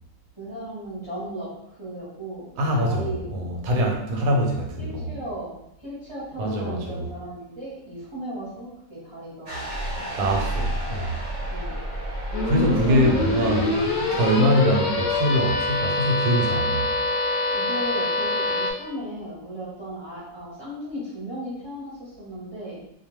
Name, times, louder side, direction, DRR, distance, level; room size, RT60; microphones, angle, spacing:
voice 1, 0.3-3.5 4.2-4.4 4.8-9.6 10.1-10.6 11.5-11.8 12.8-13.2 17.5-22.8, right 1 dB, 25° right, -9 dB, 0.8 m, -36 dB
voice 2, 2.6-5.1 6.4-7.0 10.2-11.2 12.4-16.9, equal, 85° right, 1 dB, 1.1 m, -24 dB
sound 1, 9.5-14.6, right 1 dB, 60° right, 0.8 m, -31 dB
sound 2, 12.3-18.7, left 2 dB, 70° left, 0.9 m, -25 dB
2.5 x 2.2 x 3.0 m, 0.82 s
omnidirectional pair, 1.5 m